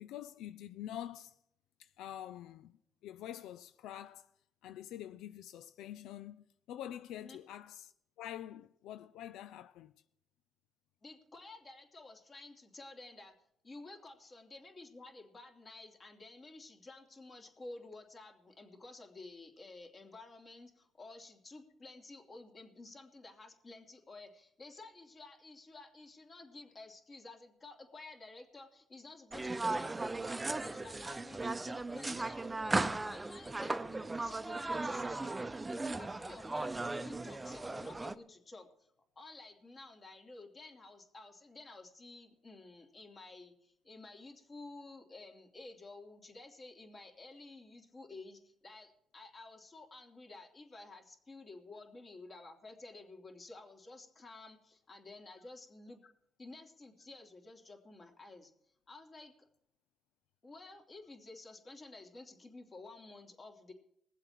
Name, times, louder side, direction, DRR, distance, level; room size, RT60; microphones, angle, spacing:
voice 1, 0.0-1.3 1.8-2.8 3.0-4.3 4.6-7.9 8.2-9.9, left 12 dB, 90° left, 0.4 m, -46 dB
voice 2, 11.0-13.3 13.6-38.9 39.1-56.0 56.4-58.5 58.9-59.5 60.4-63.7, left 2 dB, 35° left, 2.9 m, -52 dB
sound 1, 29.3-38.1, right 2 dB, 20° right, 0.7 m, -37 dB
21.0 x 7.6 x 4.6 m
cardioid pair, 90°, 0 cm